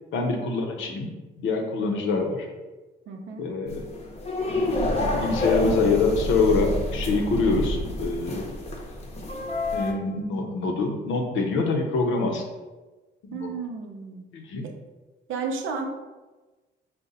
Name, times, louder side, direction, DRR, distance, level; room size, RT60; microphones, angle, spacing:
voice 1, 0.1-2.5 3.4-3.9 5.2-8.5 9.7-12.4 13.3-13.5 14.3-14.7, left 3 dB, 80° left, 3 dB, 0.6 m, -25 dB
voice 2, 3.1-3.5 13.3-14.3 14.6-14.7 15.3-15.9, right 5 dB, 80° right, 3 dB, 0.6 m, -33 dB
sound 1, 3.7-9.9, left 1 dB, 30° left, 0.7 m, -28 dB
3.9 x 2.1 x 3.9 m, 1.2 s
cardioid pair, 90°, 20 cm